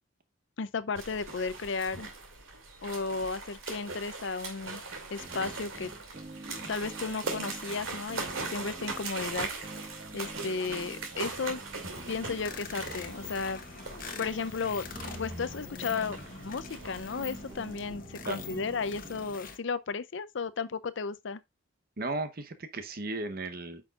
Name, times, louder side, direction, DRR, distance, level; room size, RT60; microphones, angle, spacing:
voice 1, 0.6-2.1 2.8-4.8 5.1-5.9 6.7-9.5 10.1-11.6 12.1-13.6 14.2-14.8 15.2-16.2 16.4-21.4, left 4 dB, 65° left, 0.5 m, -34 dB
sound 1, 0.9-17.9, right 3 dB, 80° right, 2.6 m, -41 dB
sound 2, 5.2-19.4, right 2 dB, 25° right, 0.4 m, -49 dB
sound 3, 11.9-19.6, left 4 dB, 40° left, 1.1 m, -43 dB
voice 2, 18.2-18.6 22.0-23.8, right 2 dB, 45° right, 1.0 m, -36 dB
8.9 x 6.1 x 2.4 m
head